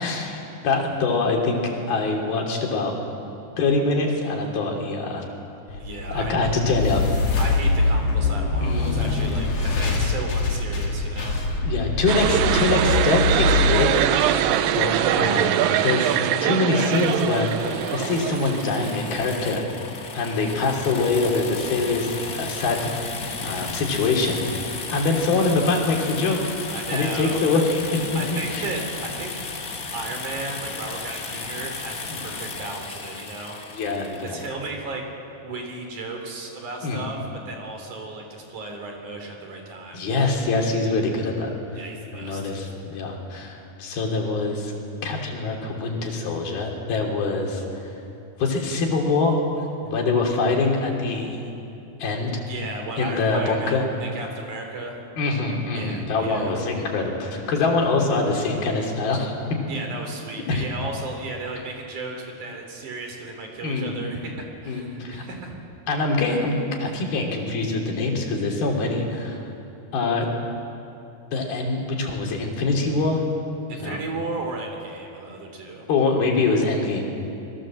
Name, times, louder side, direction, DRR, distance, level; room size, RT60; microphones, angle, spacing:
voice 1, 0.0-3.0 3.6-5.2 6.1-7.0 8.6-9.4 11.6-13.9 14.7-15.6 15.8-17.6 17.9-19.6 20.1-22.9 23.4-24.4 24.9-26.4 26.9-27.8 28.1-28.6 32.1-32.3 33.7-34.6 36.8-37.1 39.9-41.5 42.1-44.7 45.0-47.9 48.4-49.4 49.8-51.4 52.0-52.4 53.0-53.9 55.2-59.3 59.7-59.8 60.5-60.6 63.6-64.0 64.6-65.2 65.9-69.4 69.9-70.3 71.3-73.2 73.7-74.0 75.9-77.1, left 3 dB, 70° left, 1 dB, 4.9 m, -24 dB
sound 1, 5.7-14.8, left 3 dB, 45° left, 3.2 m, -24 dB
voice 2, 5.8-6.3 7.4-11.6 26.7-27.4 28.1-29.4 29.9-33.6 34.2-35.0 35.4-37.2 37.4-40.0 41.7-42.5 52.5-55.0 55.7-56.5 59.7-65.6 73.7-75.9, right 3 dB, 55° right, 3 dB, 4.6 m, -35 dB
sound 2, 12.1-19.2, right 11 dB, 75° right, 2.2 m, -23 dB
sound 3, 16.8-34.5, left 4 dB, 90° left, 0.8 m, -34 dB
26.5 x 21.5 x 7.6 m, 2.7 s
omnidirectional pair, 4.5 m